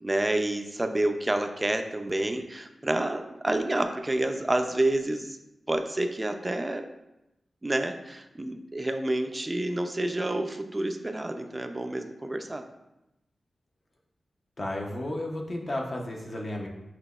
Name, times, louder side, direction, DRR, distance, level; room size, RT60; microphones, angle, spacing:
voice 1, 0.0-5.4 5.7-6.8 7.6-12.6, right 1 dB, 20° right, 6 dB, 0.3 m, -29 dB
voice 2, 14.6-16.7, left 1 dB, 40° left, 0 dB, 0.6 m, -33 dB
5.8 x 2.8 x 2.3 m, 0.92 s
wide cardioid pair, 115°, 0 cm